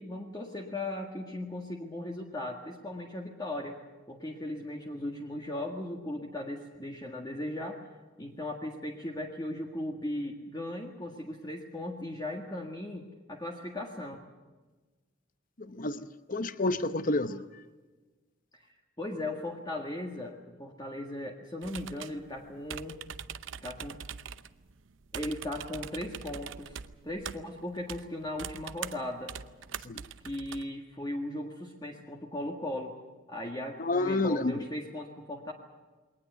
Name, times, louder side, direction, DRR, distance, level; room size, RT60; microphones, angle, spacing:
voice 1, 0.0-3.8 4.1-7.8 8.2-14.2 18.6-18.7 19.0-23.0 23.6-24.0 25.1-29.3 30.2-32.9 33.3-35.5, left 1 dB, 20° left, 1.8 m, -37 dB
voice 2, 15.6-17.6 29.8-30.0 33.8-34.6, left 2 dB, 40° left, 0.8 m, -30 dB
sound 1, 21.6-30.7, right 7 dB, 70° right, 0.8 m, -43 dB
22.0 x 19.0 x 8.1 m
head